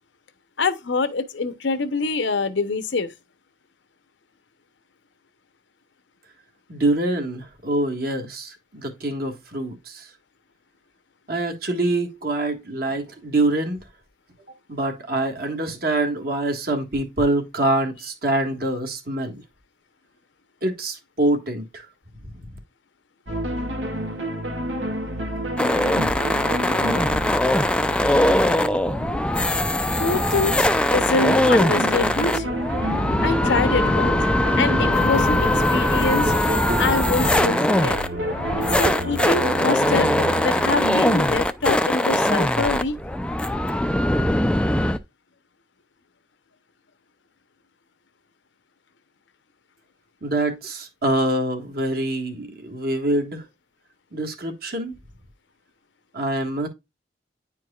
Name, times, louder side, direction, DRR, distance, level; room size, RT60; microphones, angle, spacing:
voice 1, 0.6-3.1 30.0-32.5 33.2-34.2 34.6-36.3 36.8-38.0 38.6-43.0, left 3 dB, 75° left, 0.8 m, -25 dB
voice 2, 6.7-10.1 11.3-13.8 14.7-19.4 20.6-21.9 50.2-53.4 54.1-54.9 56.1-56.7, right 1 dB, 50° right, 1.5 m, -25 dB
sound 1, 23.3-41.2, right 1 dB, 90° right, 2.2 m, -29 dB
sound 2, 25.6-45.0, left 1 dB, 5° left, 0.3 m, -21 dB
9.8 x 4.6 x 2.3 m
head